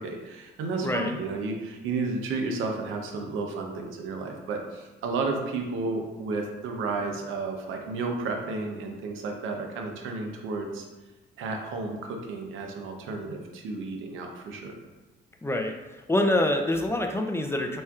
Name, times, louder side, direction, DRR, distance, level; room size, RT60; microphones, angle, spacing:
voice 1, 0.0-10.9 11.4-14.7, right 3 dB, 85° right, 2 dB, 0.7 m, -32 dB
voice 2, 0.8-1.1 15.4-15.7 16.1-17.8, left 1 dB, 10° left, 3 dB, 0.5 m, -25 dB
4.4 x 4.3 x 2.4 m, 1.1 s
cardioid pair, 90°, 20 cm